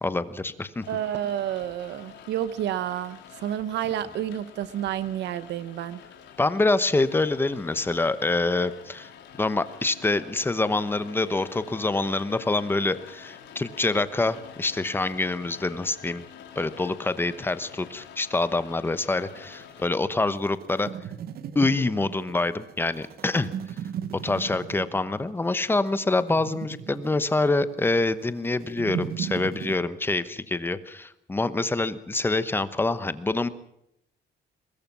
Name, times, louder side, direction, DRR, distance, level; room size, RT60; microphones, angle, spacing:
voice 1, 0.0-0.8 6.4-9.1 9.4-16.2 16.6-20.9 21.5-23.5 24.2-33.5, left 2 dB, 10° left, 13 dB, 1.0 m, -26 dB
Rain, 0.8-19.8, left 8 dB, 85° left, 3.9 m, -47 dB
voice 2, 0.9-6.0, right 11 dB, 75° right, 15 dB, 0.9 m, -30 dB
sound 1, 19.1-29.8, right 9 dB, 55° right, 1.1 m, -37 dB
23.0 x 20.0 x 6.1 m, 0.78 s
cardioid pair, 170°, 18 cm